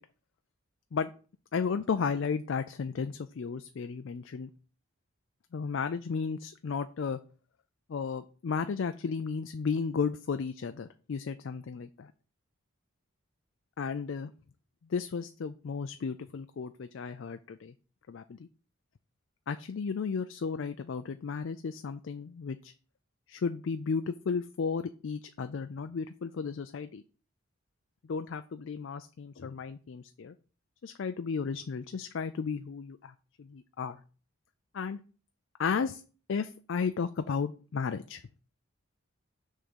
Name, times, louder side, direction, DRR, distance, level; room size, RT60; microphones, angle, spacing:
voice 1, 1.5-4.5 5.5-7.2 7.9-12.1 13.8-14.3 14.9-17.7 18.1-18.5 19.5-22.7 23.3-27.0 28.1-30.3 30.8-34.0 34.7-35.0 35.6-36.0 36.3-38.2, left 5 dB, 60° left, 9 dB, 0.4 m, -34 dB
6.5 x 3.7 x 6.1 m, 0.37 s
head